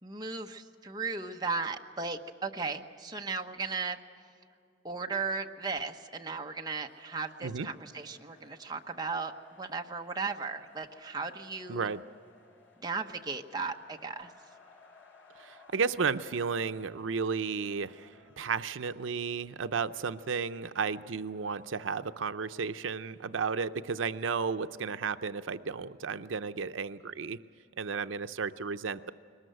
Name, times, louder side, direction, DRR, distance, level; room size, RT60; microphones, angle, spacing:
voice 1, 0.0-4.0 4.8-9.3 9.6-11.9 12.8-14.3, right 4 dB, 20° right, 3 dB, 1.0 m, -36 dB
sound 1, 6.7-25.6, left 4 dB, 80° left, 7.1 m, -62 dB
voice 2, 11.7-12.0 15.4-27.4 27.8-29.1, right 5 dB, 85° right, 11 dB, 0.6 m, -33 dB
22.5 x 20.0 x 7.9 m, 2.5 s
head